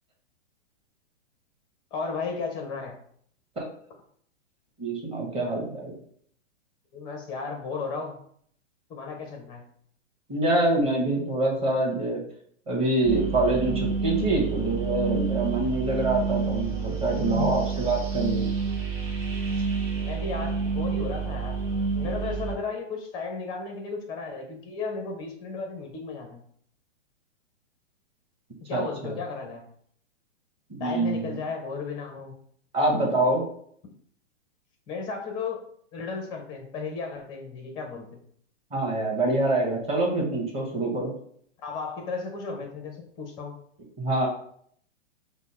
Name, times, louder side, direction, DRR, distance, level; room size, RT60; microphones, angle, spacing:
voice 1, 1.9-3.0 6.9-8.2 8.9-9.6 17.3-17.7 19.9-21.6 21.9-26.4 28.7-29.7 30.8-32.3 34.9-35.6 35.9-38.2 41.6-43.5, left 4 dB, 10° left, 2 dB, 0.5 m, -34 dB
voice 2, 4.8-5.9 10.3-12.2 12.7-18.5 28.7-28.8 29.1-29.2 30.7-31.4 32.7-33.4 38.7-41.1 44.0-44.3, right 2 dB, 15° right, -2 dB, 1.1 m, -25 dB
sound 1, 13.0-22.6, right 5 dB, 30° right, 1.7 m, -29 dB
6.1 x 2.0 x 4.2 m, 0.63 s
hypercardioid pair, 145°, 37 cm